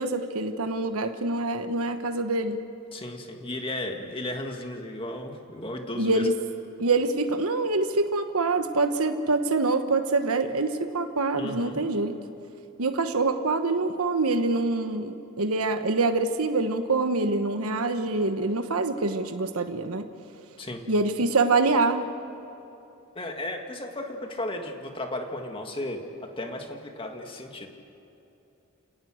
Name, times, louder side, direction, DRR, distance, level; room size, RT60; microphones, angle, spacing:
voice 1, 0.0-2.6 6.0-6.3 6.8-12.1 12.8-20.0 20.9-22.0, right 3 dB, 85° right, 7 dB, 1.2 m, -25 dB
voice 2, 2.9-6.3 11.4-11.8 20.6-20.8 23.2-27.7, left 1 dB, 25° left, 3 dB, 2.0 m, -34 dB
30.0 x 18.0 x 6.5 m, 2.9 s
head